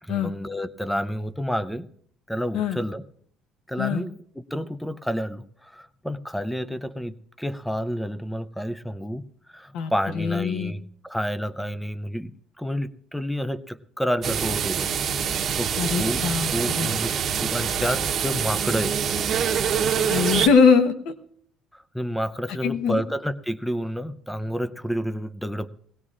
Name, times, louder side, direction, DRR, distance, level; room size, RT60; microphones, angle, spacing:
voice 1, 0.0-1.9 2.3-3.0 3.7-9.2 9.5-14.9 15.3-17.1 17.4-18.9 21.7-25.7, equal, ahead, 15 dB, 0.4 m, -30 dB
voice 2, 9.7-10.7 15.8-16.5 16.7-16.9 20.1-21.1 22.6-23.0, left 6 dB, 75° left, 9 dB, 1.0 m, -22 dB
sound 1, 14.2-20.5, right 7 dB, 40° right, 0.9 m, -25 dB
20.0 x 17.0 x 2.5 m, 0.65 s
cardioid pair, 160°, 0 cm